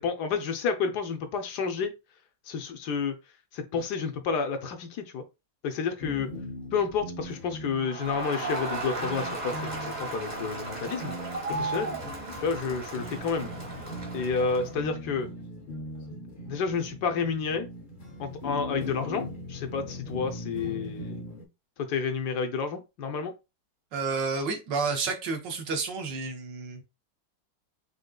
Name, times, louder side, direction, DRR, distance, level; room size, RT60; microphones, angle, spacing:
voice 1, 0.0-2.0 2.5-3.2 3.5-5.2 5.6-6.3 6.7-11.1 11.5-11.9 12.4-13.5 14.1-15.3 16.5-17.7 18.2-21.2 21.8-23.3, left 5 dB, 70° left, 1.2 m, -30 dB
sound 1, 6.0-21.4, left 1 dB, 55° left, 0.5 m, -40 dB
Crowd, 7.8-14.8, right 2 dB, 30° right, 1.1 m, -35 dB
voice 2, 23.9-26.8, right 4 dB, 80° right, 1.6 m, -30 dB
5.2 x 3.6 x 2.2 m
omnidirectional pair, 2.0 m